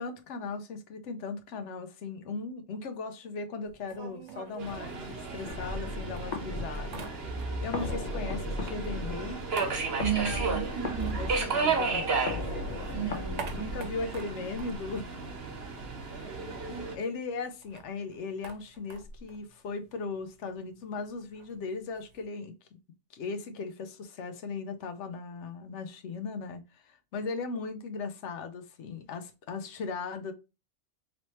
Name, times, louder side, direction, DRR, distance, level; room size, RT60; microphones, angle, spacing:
voice 1, 0.0-9.4 11.0-12.4 13.5-15.1 16.0-22.7 23.1-30.3, left 4 dB, 80° left, 0.9 m, -38 dB
sound 1, 3.6-5.8 6.2-7.8 8.1-12.2 12.5-15.8 16.1-16.2 16.4-22.2, right 5 dB, 85° right, 1.1 m, -47 dB
Subway metro underground, 4.6-17.0, right 4 dB, 60° right, 1.1 m, -34 dB
sound 2, 5.5-14.4, left 1 dB, 45° left, 0.7 m, -37 dB
voice 2, 10.0-11.2 12.9-13.7, right 8 dB, 30° right, 0.6 m, -33 dB
3.1 x 3.0 x 2.8 m
omnidirectional pair, 1.2 m